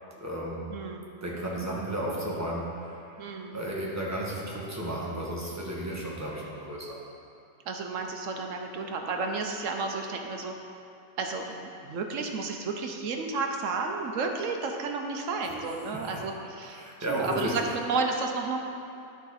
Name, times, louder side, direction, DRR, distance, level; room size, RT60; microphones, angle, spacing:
voice 1, 0.2-0.7 1.2-3.1 3.5-7.0 15.4-15.5 15.9-16.2 16.7-17.5, right 1 dB, 15° right, -5 dB, 1.2 m, -33 dB
voice 2, 0.7-1.1 3.2-3.6 7.7-10.5 11.2-18.6, right 4 dB, 70° right, 3 dB, 1.1 m, -32 dB
11.0 x 5.0 x 4.1 m, 2.7 s
omnidirectional pair, 1.4 m